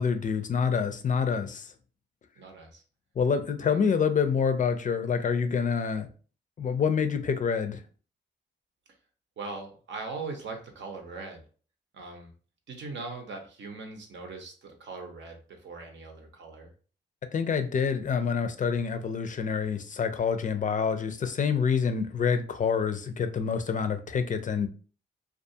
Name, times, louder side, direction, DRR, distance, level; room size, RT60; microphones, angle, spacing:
voice 1, 0.0-1.7 3.2-6.1 6.6-7.8 17.3-24.7, left 6 dB, 40° left, 0.4 m, -27 dB
voice 2, 2.4-2.8 3.6-3.9 9.4-11.4 11.9-12.3 12.7-16.7, right 3 dB, 70° right, 0.7 m, -40 dB
2.4 x 2.3 x 2.7 m
cardioid pair, 70°, 19 cm